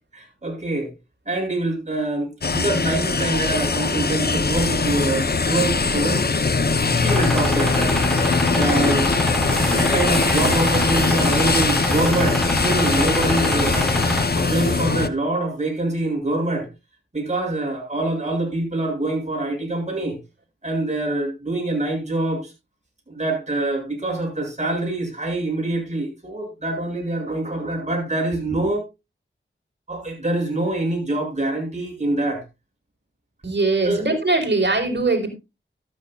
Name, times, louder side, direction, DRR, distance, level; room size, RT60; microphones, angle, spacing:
voice 1, 0.1-0.9 1.3-6.3 6.9-8.0 8.5-9.1 9.7-13.9 14.4-16.7 17.1-20.2 20.6-22.5 23.1-28.8 29.9-32.4 33.8-34.1, right 2 dB, 35° right, 7.7 m, -25 dB
sound 1, 2.4-15.1, left 4 dB, 50° left, 1.0 m, -21 dB
sound 2, 7.1-14.2, equal, ahead, 5.0 m, -26 dB
sound 3, 9.5-14.9, right 4 dB, 85° right, 3.0 m, -37 dB
voice 2, 33.4-35.3, right 3 dB, 55° right, 4.5 m, -21 dB
14.0 x 13.0 x 2.5 m
wide cardioid pair, 65°, 21 cm